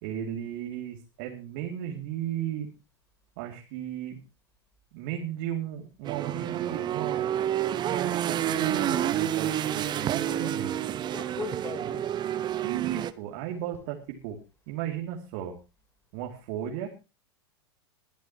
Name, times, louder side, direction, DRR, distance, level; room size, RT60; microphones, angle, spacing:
voice 1, 0.0-2.7 3.4-4.2 4.9-7.3 7.7-10.8 12.6-14.4 14.7-15.6 16.1-16.9, right 10 dB, 55° right, 2.7 m, -35 dB
sound 1, 6.0-13.1, right 11 dB, 30° right, 1.0 m, -29 dB
voice 2, 10.2-12.1, left 4 dB, 20° left, 3.9 m, -40 dB
22.0 x 10.5 x 3.0 m
figure-of-eight pair, 90°, 14 cm